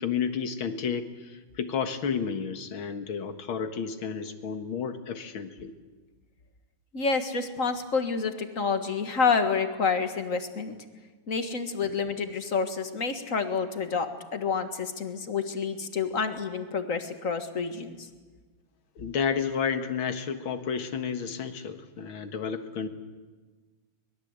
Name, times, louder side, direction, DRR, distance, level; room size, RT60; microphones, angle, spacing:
voice 1, 0.0-5.7 19.0-22.9, left 6 dB, 75° left, 8 dB, 2.4 m, -31 dB
voice 2, 6.9-10.8 11.3-18.1, left 5 dB, 40° left, 7 dB, 2.0 m, -28 dB
23.5 x 21.0 x 8.2 m, 1.4 s
omnidirectional pair, 2.3 m